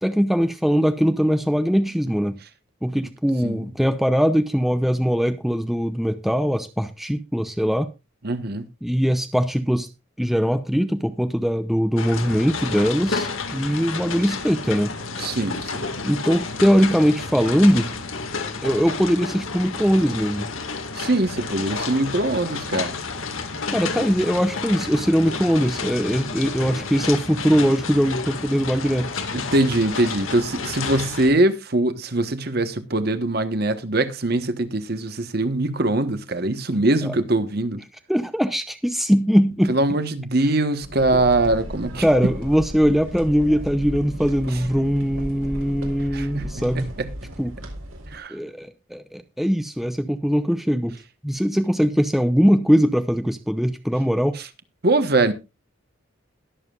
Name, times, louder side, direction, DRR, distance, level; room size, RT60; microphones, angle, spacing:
voice 1, 0.0-2.4 2.8-7.9 8.8-9.9 10.2-14.9 16.0-17.9 18.6-20.5 23.7-29.1 37.0-37.1 38.1-39.8 42.0-46.9 47.4-47.5 48.3-51.0 51.2-54.4, equal, ahead, 0.6 m, -21 dB
voice 2, 8.2-8.7 15.2-15.9 20.9-22.9 29.3-37.8 39.7-42.0 46.1-46.5 46.7-47.1 48.1-48.3 54.4-54.5 54.8-55.3, right 2 dB, 50° right, 1.2 m, -22 dB
sound 1, 12.0-31.3, left 4 dB, 80° left, 1.9 m, -31 dB
sound 2, 40.8-48.2, equal, 80° right, 4.0 m, -35 dB
21.5 x 7.4 x 2.4 m
head